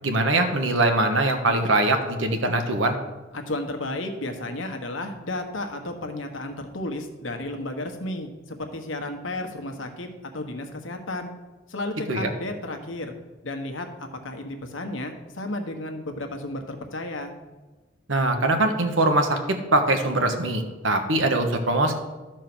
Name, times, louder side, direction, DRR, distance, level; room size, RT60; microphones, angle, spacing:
voice 1, 0.0-3.0 12.1-12.3 18.1-21.9, right 2 dB, 85° right, 5 dB, 1.3 m, -22 dB
voice 2, 3.3-10.1 10.3-11.3 11.7-13.1 13.4-13.9 14.2-17.3, left 2 dB, 80° left, 5 dB, 1.2 m, -33 dB
13.0 x 4.6 x 6.1 m, 1.2 s
head